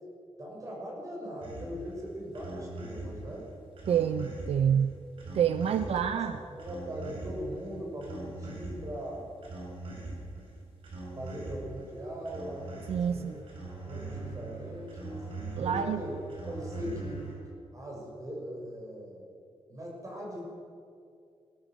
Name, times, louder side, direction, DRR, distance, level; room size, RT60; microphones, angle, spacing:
voice 1, 0.4-3.5 5.6-5.8 6.1-6.2 6.6-9.2 11.1-13.4 13.8-15.2 15.6-16.1 16.5-17.3 17.7-19.2 19.7-20.4, equal, 30° right, -2 dB, 6.7 m, -40 dB
sound 1, 1.4-17.3, right 2 dB, 60° right, 6.7 m, -42 dB
voice 2, 3.9-5.0 5.3-6.4 12.9-13.4 15.6-16.0, right 8 dB, 75° right, 10 dB, 0.7 m, -27 dB
21.0 x 17.0 x 7.7 m, 2.4 s
wide cardioid pair, 155°, 10 cm